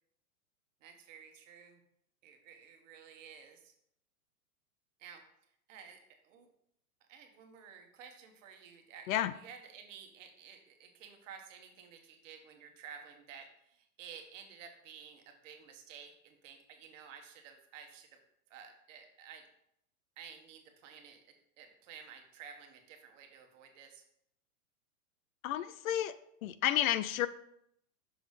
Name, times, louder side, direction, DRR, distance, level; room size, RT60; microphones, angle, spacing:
voice 1, 0.8-1.8 2.2-3.7 5.0-5.2 5.7-6.0 6.2-6.5 7.1-18.2 18.5-19.4 20.2-21.2 21.6-24.0, right 7 dB, 55° right, 4 dB, 1.4 m, -53 dB
voice 2, 25.4-26.1 26.4-27.3, left 12 dB, 65° left, 15 dB, 0.5 m, -31 dB
6.2 x 3.9 x 4.8 m, 0.73 s
hypercardioid pair, 130°, 45 cm